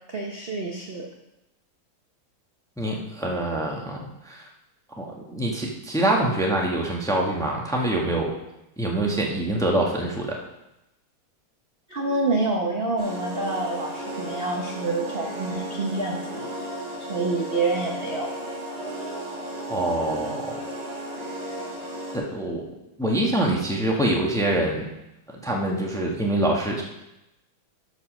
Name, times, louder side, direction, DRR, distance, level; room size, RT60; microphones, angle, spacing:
voice 1, 0.1-1.1 11.9-16.5 17.1-18.3, right 3 dB, 45° right, 0 dB, 0.8 m, -27 dB
voice 2, 2.8-4.5 5.0-8.3 8.8-10.4 19.7-20.6 22.1-22.6 23.0-24.9 25.4-26.8, right 1 dB, ahead, -1 dB, 1.1 m, -25 dB
sound 1, 13.0-22.2, right 1 dB, 90° right, 4.6 m, -34 dB
11.0 x 5.0 x 6.3 m, 0.92 s
omnidirectional pair, 2.3 m